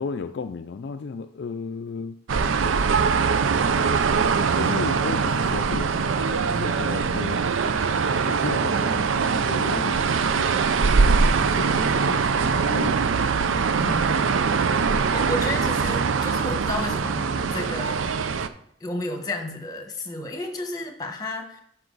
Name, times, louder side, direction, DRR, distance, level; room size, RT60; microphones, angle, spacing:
voice 1, 0.0-2.2 4.6-7.4 8.3-10.5 11.5-13.0, left 5 dB, 60° left, 8 dB, 0.4 m, -34 dB
sound 1, 2.3-18.5, right 5 dB, 90° right, 0.5 m, -22 dB
voice 2, 13.8-14.4 15.1-18.1 18.8-21.6, left 1 dB, 20° left, 4 dB, 1.3 m, -32 dB
12.5 x 6.0 x 4.0 m, 0.71 s
head